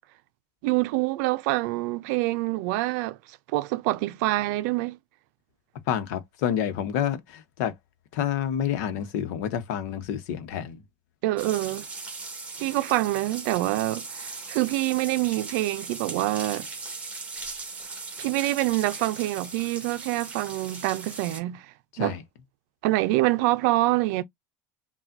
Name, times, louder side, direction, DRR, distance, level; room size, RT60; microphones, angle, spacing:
voice 1, 0.6-3.2 3.5-5.0 11.2-11.9 12.6-16.7 18.2-21.7 22.0-22.2 22.8-24.2, right 18 dB, 70° right, 0.5 m, -26 dB
voice 2, 5.9-7.7 8.1-10.8 21.9-22.2, left 9 dB, 75° left, 0.9 m, -28 dB
sound 1, 11.4-21.4, right 3 dB, 15° right, 1.3 m, -39 dB
5.6 x 2.4 x 2.6 m
supercardioid pair, 115°, 9 cm